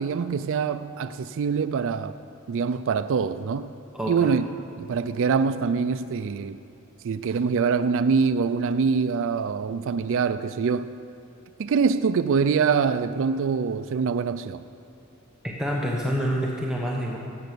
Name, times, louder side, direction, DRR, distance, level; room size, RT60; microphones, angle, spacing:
voice 1, 0.0-2.1 2.5-3.7 4.1-4.4 4.8-6.6 7.0-10.9 11.6-14.6, right 5 dB, 60° right, 0.4 m, -24 dB
voice 2, 3.9-4.3 15.4-17.2, equal, 5° right, 1.1 m, -27 dB
16.5 x 8.0 x 6.8 m
head